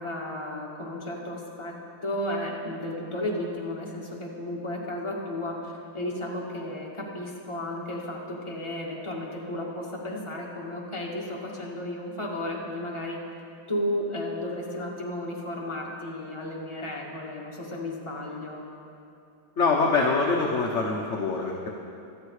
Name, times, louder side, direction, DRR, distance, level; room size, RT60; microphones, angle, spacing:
voice 1, 0.0-1.7 2.0-13.2 13.7-18.6, left 1 dB, 15° left, -3 dB, 2.1 m, -33 dB
voice 2, 19.6-21.7, left 4 dB, 45° left, 0 dB, 1.2 m, -24 dB
26.5 x 9.0 x 4.9 m, 2.6 s
omnidirectional pair, 2.1 m